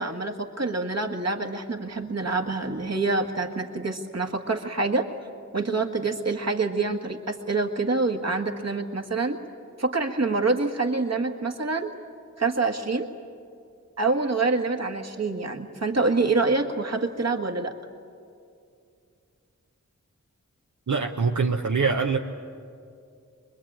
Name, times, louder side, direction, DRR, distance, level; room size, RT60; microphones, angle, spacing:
voice 1, 0.0-5.1 5.5-9.4 9.8-11.9 12.4-13.1 14.0-17.7, right 3 dB, 55° right, 4 dB, 1.8 m, -26 dB
voice 2, 20.9-22.2, right 4 dB, 75° right, 2 dB, 1.0 m, -24 dB
24.5 x 21.5 x 8.9 m, 2.4 s
wide cardioid pair, 45°, 30 cm